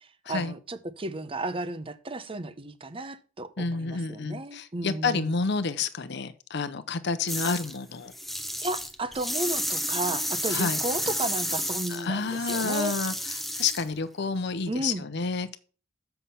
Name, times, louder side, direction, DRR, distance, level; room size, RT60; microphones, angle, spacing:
voice 1, 0.0-5.3 8.6-13.0 14.7-15.0, right 2 dB, 30° right, 0.8 m, -33 dB
voice 2, 3.6-8.1 10.5-10.8 11.9-15.6, left 4 dB, 60° left, 0.7 m, -29 dB
sound 1, 7.3-7.8 8.1-13.9, equal, ahead, 0.9 m, -31 dB
7.5 x 5.7 x 5.5 m
head